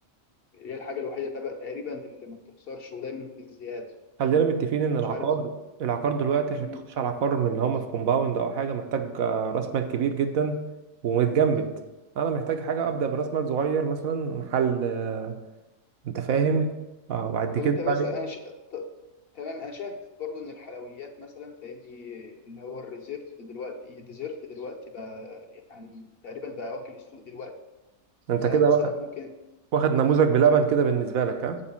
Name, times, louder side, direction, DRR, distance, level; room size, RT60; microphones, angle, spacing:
voice 1, 0.5-3.9 5.1-5.3 6.6-6.8 16.5-16.6 17.6-18.9 19.3-27.5 28.4-29.3 30.0-30.2, left 4 dB, 50° left, 4 dB, 1.0 m, -38 dB
voice 2, 4.2-5.5 5.8-6.7 7.0-10.6 11.0-11.7 12.2-15.4 16.0-16.7 17.1-18.2 28.3-28.8 29.7-31.6, right 6 dB, 80° right, 7 dB, 1.3 m, -24 dB
7.1 x 5.1 x 7.0 m, 1.0 s
omnidirectional pair, 1.4 m